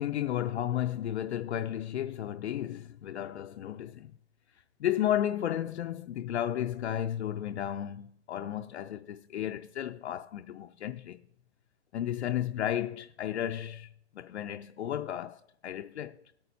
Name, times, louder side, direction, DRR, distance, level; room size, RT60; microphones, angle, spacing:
voice 1, 0.0-4.1 4.8-11.2 11.9-16.2, left 11 dB, 70° left, 0.5 m, -33 dB
21.0 x 8.6 x 2.7 m
hypercardioid pair, 180°, 35 cm